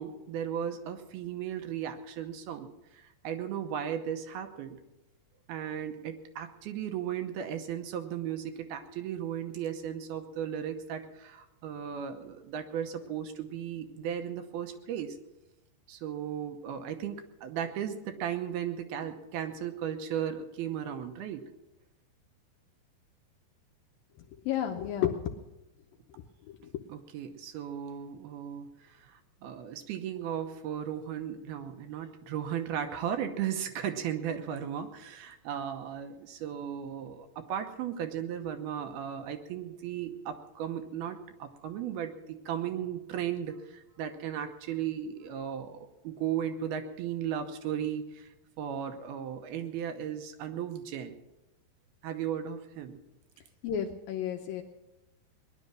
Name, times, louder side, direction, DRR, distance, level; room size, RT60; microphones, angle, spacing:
voice 1, 0.0-4.8 5.5-15.2 15.9-21.5 26.9-48.3 48.6-51.2 52.0-53.0, right 9 dB, 75° right, 6 dB, 2.7 m, -36 dB
voice 2, 24.5-25.2 53.6-54.6, left 10 dB, 75° left, 4 dB, 2.2 m, -31 dB
19.5 x 11.0 x 6.3 m, 0.96 s
omnidirectional pair, 4.9 m